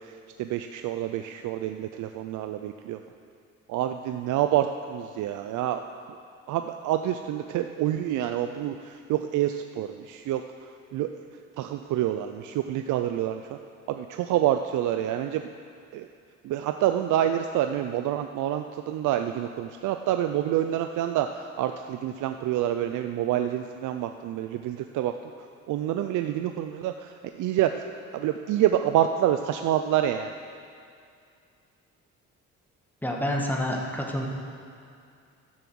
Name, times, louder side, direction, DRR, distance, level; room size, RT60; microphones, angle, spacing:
voice 1, 0.0-3.0 3.7-5.8 6.5-10.4 10.9-11.1 11.6-13.6 13.9-15.4 15.9-16.1 16.4-25.2 25.7-27.8 28.1-30.3, right 11 dB, 80° right, 7 dB, 0.5 m, -27 dB
voice 2, 33.0-34.3, left 1 dB, 5° left, 0 dB, 1.7 m, -28 dB
12.0 x 7.0 x 6.3 m, 2.4 s
cardioid pair, 90°, 30 cm